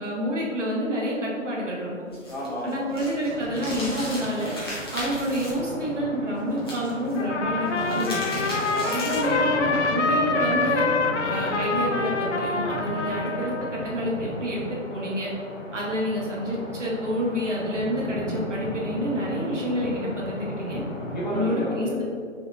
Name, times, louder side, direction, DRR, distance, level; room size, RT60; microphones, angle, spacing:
voice 1, 0.0-1.9 2.6-4.5 4.9-8.4 8.9-10.9 11.2-15.3 15.7-20.8 21.3-22.0, equal, 65° right, -4 dB, 1.4 m, -28 dB
sound 1, 2.1-5.5 6.6-7.2 7.7-9.4, left 1 dB, 20° left, 0.7 m, -36 dB
voice 2, 2.3-3.0 8.7-9.0 21.0-22.0, equal, 35° left, -5 dB, 1.0 m, -32 dB
sound 2, 3.2-21.5, left 1 dB, 85° left, 1.2 m, -36 dB
Trumpet, 7.2-13.9, left 3 dB, 65° left, 0.5 m, -26 dB
5.4 x 3.5 x 2.5 m, 2.2 s
figure-of-eight pair, 150°, 39 cm